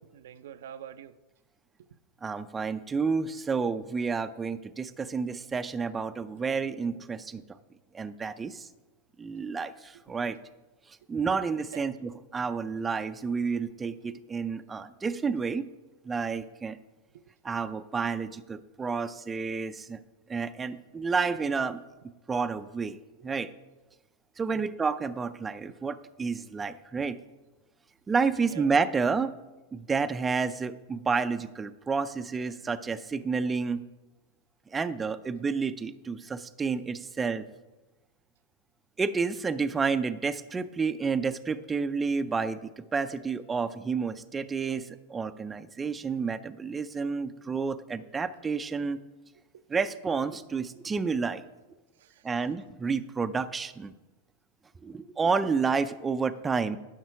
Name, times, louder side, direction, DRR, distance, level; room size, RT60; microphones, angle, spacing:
voice 1, 0.1-1.2 1.8-1.9 10.1-10.2 11.7-11.9 17.1-17.2 23.2-23.3 24.5-24.7 28.5-28.7 47.5-47.6 49.5-49.6 52.0-52.3, right 10 dB, 75° right, 0.4 m, -46 dB
voice 2, 2.2-7.4 7.9-8.7 9.2-10.4 11.1-15.7 16.0-16.8 17.4-20.0 20.3-21.8 22.3-23.0 23.2-23.5 24.4-27.2 28.1-29.3 29.7-33.8 34.7-37.4 39.0-49.0 49.7-51.4 52.2-53.9 54.8-56.8, right 5 dB, 15° right, 0.4 m, -30 dB
11.0 x 5.9 x 4.7 m
hypercardioid pair, 125°, 0 cm